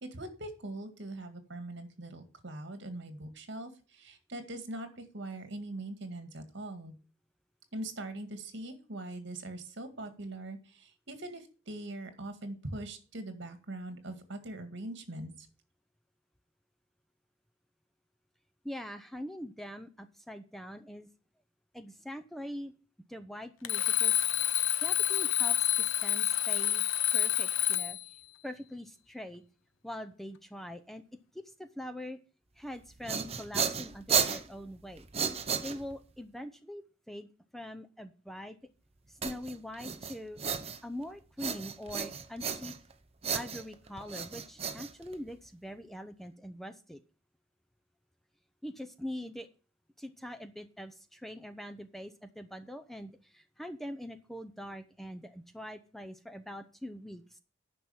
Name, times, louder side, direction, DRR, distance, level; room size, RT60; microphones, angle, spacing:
voice 1, 0.0-6.9 7.7-15.5, right 1 dB, 65° right, 8 dB, 2.0 m, -42 dB
voice 2, 18.6-21.1 21.7-22.7 23.1-24.2 24.8-26.8 27.1-28.0 28.4-29.4 29.8-31.0 31.3-32.2 32.6-35.1 35.6-38.6 39.1-40.4 40.8-42.7 43.3-47.0 48.6-49.5 50.0-57.4, equal, ahead, 8 dB, 0.6 m, -43 dB
Alarm, 23.6-28.1, left 12 dB, 85° left, 0.8 m, -28 dB
sound 1, 32.8-36.2 39.2-41.0 41.4-42.9 43.2-45.5, right 6 dB, 30° right, 0.9 m, -34 dB
9.9 x 5.9 x 7.1 m, 0.36 s
head